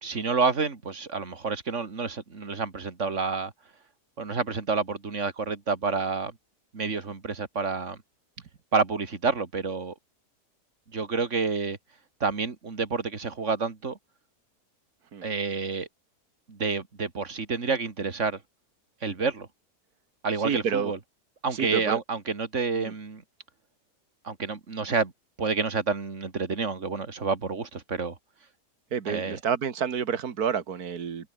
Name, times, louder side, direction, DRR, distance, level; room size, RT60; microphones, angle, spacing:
voice 1, 0.0-3.5 4.2-6.3 6.7-8.0 8.7-9.9 10.9-11.8 12.2-14.0 15.2-15.9 16.5-18.4 19.0-19.5 20.2-21.0 21.4-23.2 24.2-25.1 25.4-28.2 29.1-29.4, right 4 dB, 50° right, 2.7 m, -29 dB
voice 2, 20.4-20.9 21.5-22.0 22.8-22.9 28.9-31.3, right 7 dB, 70° right, 2.2 m, -29 dB
omnidirectional pair, 1.7 m